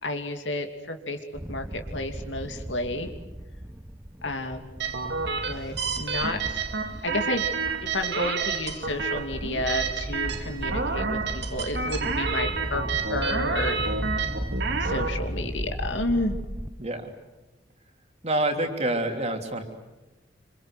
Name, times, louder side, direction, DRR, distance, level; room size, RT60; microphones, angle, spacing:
voice 1, 0.0-1.2 1.5-3.1 4.2-4.7 5.3-6.6 7.0-7.5 7.9-12.8 13.1-13.9 14.8-16.4, left 1 dB, 70° left, 6 dB, 2.8 m, -31 dB
sound 1, 1.3-16.7, equal, 15° right, 1.0 m, -36 dB
sound 2, 4.8-15.1, right 5 dB, 65° right, 2.2 m, -30 dB
voice 2, 16.8-17.1 18.2-19.6, right 1 dB, 35° right, 4 dB, 3.3 m, -27 dB
27.5 x 26.5 x 8.0 m, 1.1 s
head